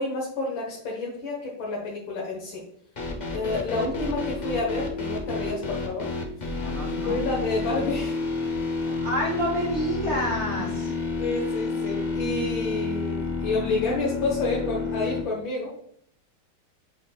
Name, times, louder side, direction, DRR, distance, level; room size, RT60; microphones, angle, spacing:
voice 1, 0.0-2.6 3.3-6.1 6.4-8.2 11.2-15.7, left 3 dB, 80° left, -3 dB, 2.2 m, -29 dB
sound 1, 3.0-15.2, left 3 dB, 40° left, 0.6 m, -30 dB
voice 2, 6.5-7.2 9.0-10.9, equal, 35° right, -5 dB, 2.0 m, -28 dB
8.9 x 5.0 x 2.4 m, 0.67 s
omnidirectional pair, 2.1 m